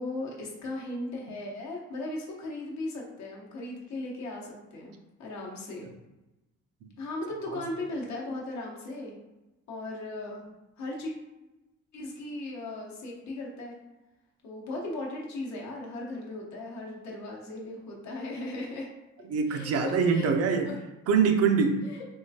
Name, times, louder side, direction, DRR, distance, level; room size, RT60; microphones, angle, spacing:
voice 1, 0.0-5.9 7.0-9.2 9.7-10.4 10.8-11.1 11.9-13.7 14.4-18.9 19.5-20.3 20.6-20.7 21.8-22.0, left 2 dB, 65° left, -2 dB, 0.9 m, -37 dB
voice 2, 19.3-20.7 21.1-21.8, right 5 dB, 55° right, 5 dB, 0.5 m, -24 dB
3.6 x 3.1 x 2.7 m, 1.0 s
cardioid pair, 165°, 30 cm